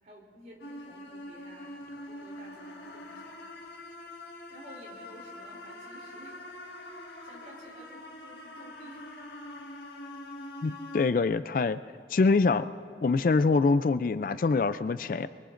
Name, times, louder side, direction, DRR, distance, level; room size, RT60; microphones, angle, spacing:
voice 1, 0.0-3.4 4.0-6.4 7.0-9.1, equal, 50° right, -2 dB, 3.1 m, -53 dB
sound 1, 0.6-11.1, left 1 dB, 80° left, 1.6 m, -44 dB
voice 2, 10.6-11.8 12.1-12.7 13.0-15.3, left 4 dB, 50° left, 13 dB, 0.3 m, -25 dB
24.0 x 23.0 x 2.6 m, 2.1 s
head